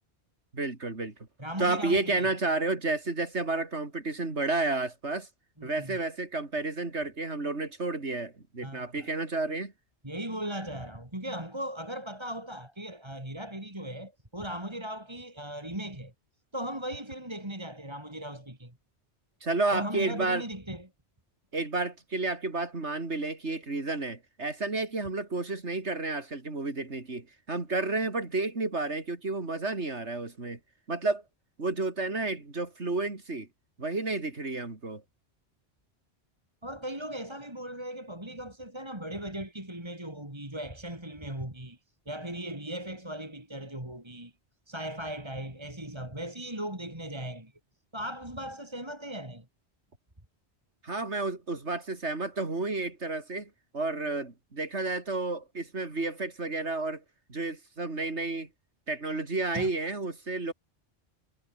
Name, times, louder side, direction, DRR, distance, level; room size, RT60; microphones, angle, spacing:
voice 1, 0.5-1.1 1.6-5.3 5.6-9.7 19.4-20.4 21.5-30.6 30.9-31.2 31.6-33.5 33.8-35.0 50.8-57.0 57.3-58.5 58.9-60.5, right 3 dB, 85° right, 3.8 m, -31 dB
voice 2, 1.4-2.3 5.6-6.0 8.6-9.1 10.0-16.1 16.5-18.7 19.7-20.9 36.6-41.8 42.1-44.3 44.7-47.5 47.9-49.5 59.5-59.7, right 1 dB, 25° right, 4.3 m, -38 dB
omnidirectional pair, 1.1 m